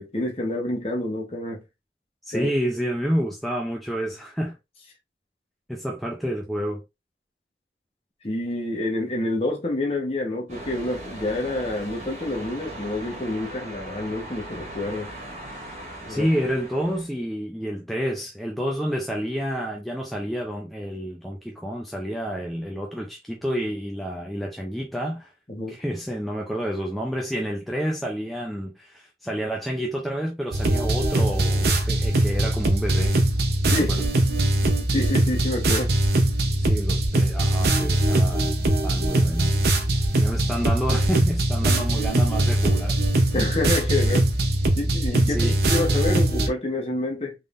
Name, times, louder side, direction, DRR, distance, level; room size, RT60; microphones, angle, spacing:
voice 1, 0.0-1.6 2.3-2.5 8.2-15.1 16.0-16.3 25.5-25.8 33.7-33.9 34.9-35.9 43.3-44.3 44.8-47.3, left 2 dB, 30° left, 1.1 m, -28 dB
voice 2, 2.3-4.6 5.7-6.8 16.1-25.3 25.7-33.2 33.7-34.0 36.6-38.5 38.8-39.6 40.2-43.0 45.3-45.6, equal, ahead, 0.4 m, -29 dB
sound 1, 10.5-17.1, right 1 dB, 35° right, 1.4 m, -39 dB
sound 2, 30.5-46.5, right 1 dB, 60° right, 0.8 m, -21 dB
3.6 x 3.4 x 2.5 m
head